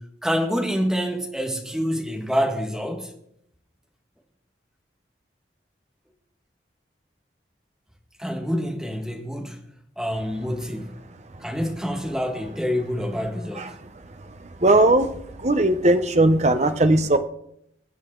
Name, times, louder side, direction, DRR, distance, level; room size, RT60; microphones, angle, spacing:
voice 1, 0.0-3.1 8.2-9.6 10.0-11.0 11.4-13.8, equal, 5° right, 1.5 m, -27 dB
voice 2, 14.6-17.2, right 2 dB, 35° right, 0.8 m, -18 dB
22.0 x 8.3 x 3.8 m
head